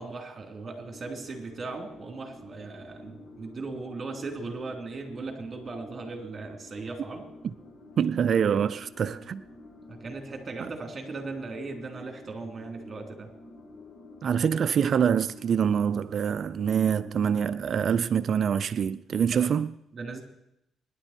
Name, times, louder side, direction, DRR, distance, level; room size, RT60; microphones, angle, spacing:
voice 1, 0.0-7.2 9.9-13.3 19.3-19.4 19.9-20.2, right 3 dB, 35° right, 3.6 m, -38 dB
sound 1, 0.8-18.4, left 2 dB, 45° left, 2.7 m, -49 dB
voice 2, 8.0-9.4 10.6-10.7 14.2-19.7, right 7 dB, 55° right, 0.5 m, -25 dB
24.5 x 11.0 x 4.5 m
cardioid pair, 90°, 0 cm